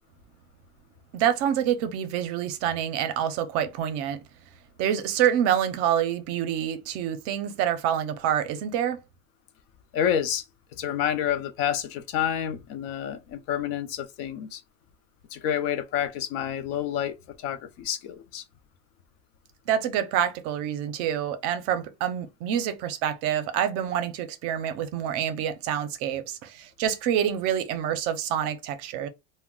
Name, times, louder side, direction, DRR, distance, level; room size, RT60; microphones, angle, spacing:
voice 1, 1.1-4.2 4.8-9.0 19.7-29.1, right 10 dB, 50° right, 0.6 m, -27 dB
voice 2, 9.9-10.5 10.7-14.6 15.3-18.4, left 9 dB, 55° left, 0.6 m, -29 dB
2.3 x 2.1 x 3.6 m
supercardioid pair, 140°, 30 cm